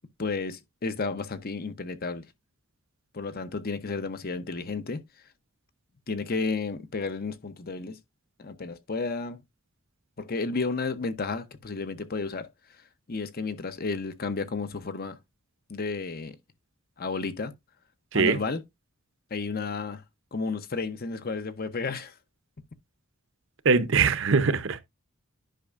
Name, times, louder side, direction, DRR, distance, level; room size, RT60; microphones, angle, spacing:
voice 1, 0.2-2.3 3.1-5.0 6.1-8.0 8.4-9.4 10.2-12.5 13.1-15.2 15.7-16.4 17.0-17.5 18.1-18.6 19.3-20.0 20.3-22.1, left 4 dB, 45° left, 0.8 m, -32 dB
voice 2, 23.6-24.8, right 5 dB, 60° right, 0.8 m, -22 dB
10.0 x 5.4 x 2.5 m
head